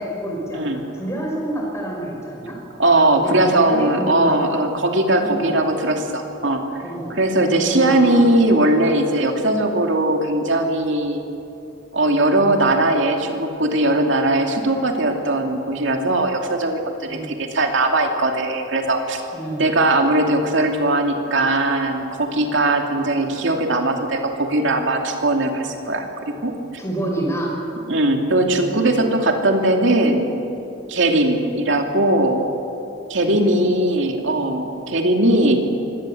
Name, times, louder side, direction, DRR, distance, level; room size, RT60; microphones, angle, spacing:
voice 1, 0.0-2.6 3.2-4.4 5.2-5.6 6.8-8.3 17.1-17.3 19.3-19.6 26.8-27.5 28.5-29.2 33.2-33.5, right 1 dB, 15° left, -1 dB, 5.5 m, -28 dB
voice 2, 2.8-6.6 7.1-11.2 11.9-19.2 19.6-26.5 27.9-30.3 30.9-32.4 33.1-35.6, right 1 dB, 65° right, 3 dB, 2.6 m, -19 dB
24.5 x 18.0 x 7.8 m, 2.7 s
head